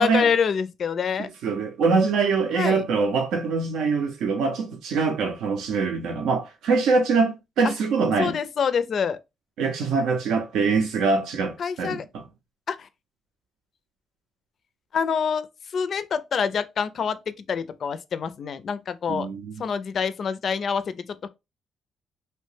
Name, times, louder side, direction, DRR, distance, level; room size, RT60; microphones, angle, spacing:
voice 1, 0.0-1.3 2.5-2.8 8.2-9.2 11.6-12.0 12.7-12.9 14.9-15.5 15.7-19.3 19.6-21.3, left 6 dB, 55° left, 0.4 m, -26 dB
voice 2, 1.2-8.4 9.6-12.2 19.1-19.5, right 4 dB, 80° right, 0.5 m, -24 dB
2.8 x 2.1 x 3.1 m
cardioid pair, 90°, 0 cm